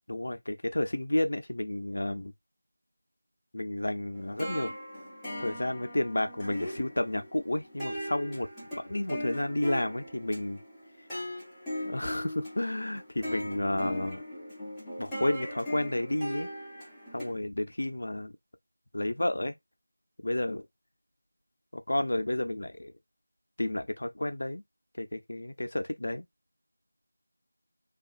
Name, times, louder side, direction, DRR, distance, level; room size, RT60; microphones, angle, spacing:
voice 1, 0.1-2.3 3.5-4.7 5.4-8.5 8.9-10.6 11.8-14.2 15.0-16.5 17.1-18.3 18.9-19.5 20.2-20.7 21.7-22.9 23.6-24.6 25.0-26.2, left 1 dB, 60° left, 0.6 m, -31 dB
sound 1, 4.1-17.3, equal, ahead, 0.7 m, -39 dB
2.9 x 2.4 x 2.5 m
figure-of-eight pair, 175°, 0 cm